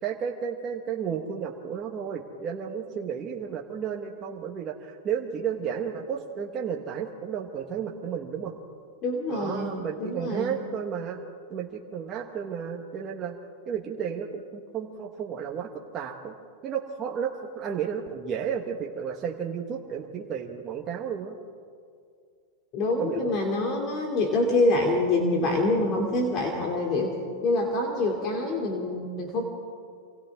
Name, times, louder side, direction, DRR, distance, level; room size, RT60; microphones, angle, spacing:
voice 1, 0.0-8.5 9.3-11.2 11.5-13.3 13.7-15.7 15.9-16.3 16.6-21.3 23.0-23.3, right 7 dB, 30° right, 0 dB, 1.4 m, -32 dB
voice 2, 9.0-10.5 22.7-29.4, left 2 dB, 40° left, 0 dB, 2.7 m, -26 dB
28.5 x 25.0 x 3.6 m, 2.2 s
supercardioid pair, 140°, 0 cm